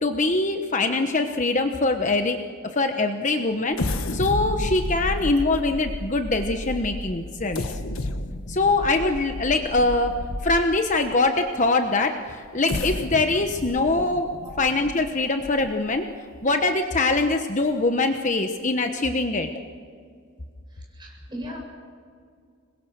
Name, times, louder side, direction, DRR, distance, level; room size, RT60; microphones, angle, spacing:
voice 1, 0.0-2.4 2.7-3.8 4.1-7.8 8.5-14.3 14.6-16.1 16.4-19.5, left 2 dB, 35° left, 5 dB, 1.1 m, -23 dB
sound 1, 3.7-10.9 11.5-11.6 12.4-16.0 16.4-16.5 17.0-17.2, left 1 dB, 85° left, 1.5 m, -31 dB
voice 2, 20.7-21.6, equal, 20° right, -1 dB, 7.8 m, -38 dB
26.5 x 21.5 x 6.6 m, 2.1 s
head